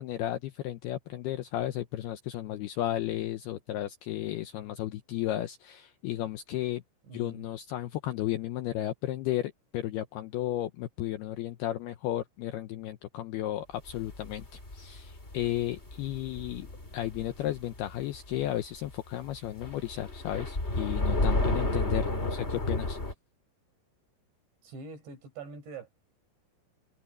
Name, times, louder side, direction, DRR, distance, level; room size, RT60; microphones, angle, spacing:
voice 1, 0.0-6.8 7.1-16.7 16.9-23.0, left 13 dB, 80° left, 2.3 m, -34 dB
voice 2, 7.0-7.5 22.1-22.5 24.6-25.9, right 4 dB, 65° right, 7.1 m, -44 dB
sound 1, 13.9-18.5 18.7-18.9 19.3-23.1, left 2 dB, 15° left, 3.3 m, -32 dB
omnidirectional pair, 5.5 m